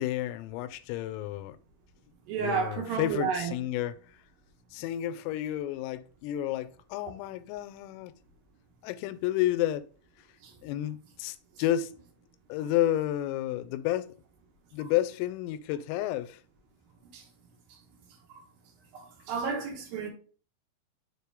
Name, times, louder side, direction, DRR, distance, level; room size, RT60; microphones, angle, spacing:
voice 1, 0.0-1.6 2.4-4.0 4.7-8.1 8.8-9.9 10.6-11.9 12.5-14.1 14.7-16.4, left 13 dB, 85° left, 3.1 m, -31 dB
voice 2, 2.3-3.5 10.4-10.5 17.1-17.2 18.3-18.4 18.9-20.1, right 6 dB, 75° right, 2.2 m, -32 dB
6.7 x 5.0 x 3.4 m
omnidirectional pair, 5.9 m